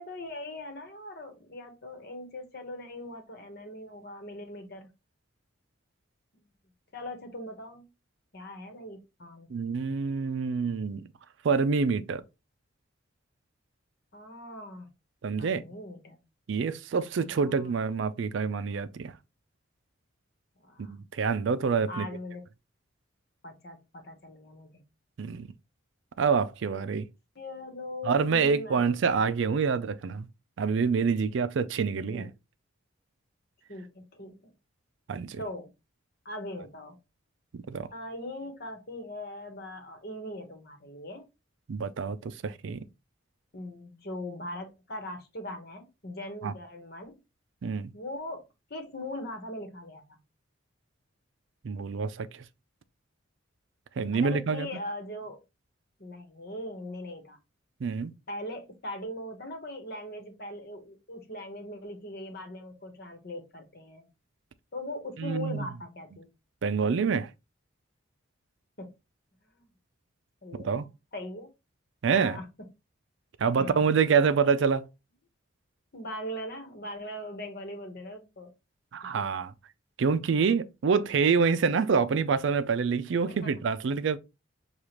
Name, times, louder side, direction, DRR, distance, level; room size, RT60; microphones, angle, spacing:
voice 1, 0.0-4.9 6.4-6.5 6.9-7.9 8.3-9.5 14.1-14.9 15.4-16.2 17.2-17.7 20.6-21.0 21.9-22.4 23.4-24.8 27.3-29.0 32.1-32.3 33.7-34.5 35.4-35.7 36.2-37.0 37.9-41.3 43.5-47.2 47.9-48.4 48.7-50.2 54.1-55.4 56.0-57.4 58.3-64.1 64.7-66.3 68.8-68.9 69.5-69.7 70.4-71.5 72.1-72.5 73.6-73.9 75.9-78.5 83.3-83.5, left 1 dB, 50° left, 1.1 m, -40 dB
voice 2, 9.5-11.0 11.4-12.2 15.2-15.6 16.5-19.1 20.8-22.1 25.2-25.5 26.2-27.1 28.0-30.3 30.6-32.3 35.1-35.4 37.5-37.9 41.7-42.8 46.4-46.5 47.6-47.9 51.6-52.4 54.0-54.7 57.8-58.1 65.2-65.6 66.6-67.3 70.5-70.9 72.0-72.4 73.4-74.9 78.9-79.5 80.0-84.2, right 5 dB, 65° right, 0.4 m, -27 dB
6.6 x 2.4 x 3.0 m
head